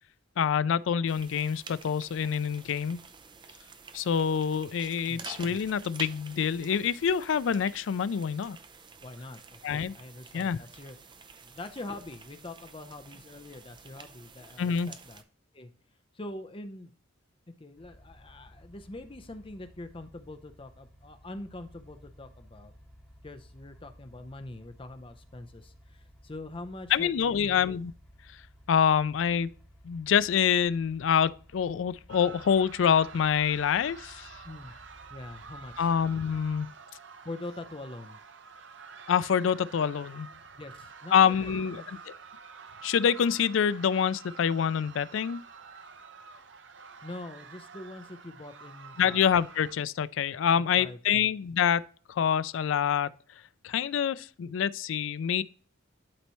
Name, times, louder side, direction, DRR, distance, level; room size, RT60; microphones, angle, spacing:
voice 1, 0.4-3.0 3.9-8.6 9.6-9.9 10.3-10.6 14.6-14.9 26.9-27.9 28.7-29.5 29.8-34.3 35.8-36.7 39.1-40.3 41.1-41.8 42.8-45.4 49.0-51.8 52.1-53.1 53.6-55.4, left 7 dB, 75° left, 0.4 m, -26 dB
sound 1, 1.1-15.2, right 5 dB, 25° right, 0.6 m, -49 dB
voice 2, 9.0-11.0 11.4-15.2 15.5-15.7 16.1-16.9 17.6-22.7 23.2-27.6 34.4-34.7 35.1-35.9 37.2-38.2 40.5-42.1 47.0-49.2 50.5-51.3, left 2 dB, 25° left, 0.7 m, -44 dB
sound 2, 17.8-36.6, equal, ahead, 1.9 m, -56 dB
sound 3, 32.1-49.7, right 5 dB, 65° right, 0.7 m, -48 dB
11.5 x 4.2 x 3.0 m
head